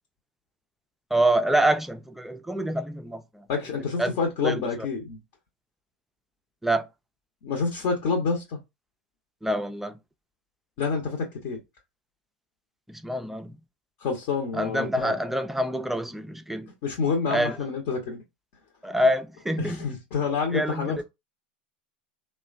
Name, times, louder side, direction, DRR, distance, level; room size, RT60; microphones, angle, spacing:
voice 1, 1.1-3.5 4.0-4.2 4.4-4.7 6.6-6.9 9.4-9.9 12.9-13.5 14.5-16.7 17.3-17.6 18.8-19.9 20.5-21.0, right 1 dB, 5° right, 0.3 m, -26 dB
voice 2, 3.5-5.2 7.4-8.6 10.8-11.6 14.0-15.1 16.8-18.2 19.6-21.0, left 5 dB, 55° left, 0.8 m, -28 dB
2.9 x 2.1 x 2.4 m
hypercardioid pair, 95°, 5 cm